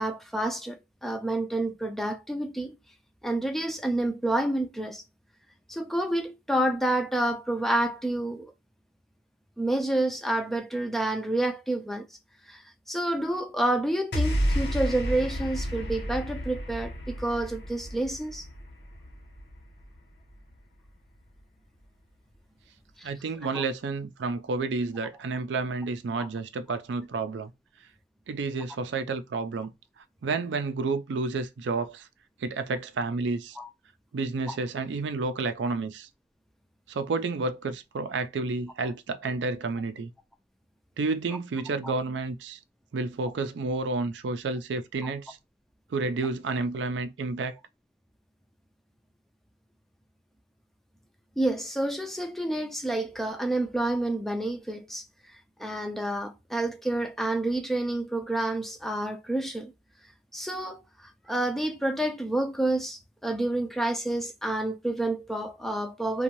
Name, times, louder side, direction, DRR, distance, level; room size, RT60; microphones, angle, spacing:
voice 1, 0.0-2.8 3.2-5.0 5.7-8.5 9.6-12.1 12.5-12.6 12.9-18.5 23.0-23.1 23.5-23.6 26.2-26.3 33.6-33.7 34.5-34.6 41.8-41.9 45.0-45.1 51.4-55.0 55.6-59.7 60.3-66.2, right 1 dB, ahead, 0.3 m, -29 dB
sound 1, 14.1-20.6, equal, 60° left, 0.9 m, -31 dB
voice 2, 23.0-27.5 28.3-29.7 30.2-32.1 32.4-33.6 34.1-36.1 36.9-40.1 41.0-42.6 42.9-45.4 45.9-47.6, right 3 dB, 80° right, 0.4 m, -30 dB
2.6 x 2.2 x 2.9 m
head